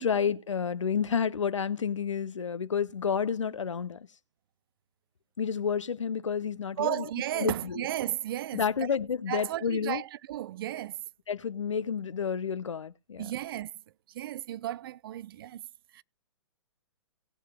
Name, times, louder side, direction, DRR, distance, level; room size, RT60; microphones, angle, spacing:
voice 1, 0.0-4.0 5.4-7.0 7.4-7.5 8.5-10.0 11.3-13.2, left 7 dB, 80° left, 0.7 m, -30 dB
voice 2, 6.8-8.9 9.3-11.0 13.2-13.7 14.1-15.6 15.9-16.0, right 13 dB, 50° right, 0.4 m, -34 dB
19.0 x 7.4 x 2.2 m
figure-of-eight pair, 120°, 16 cm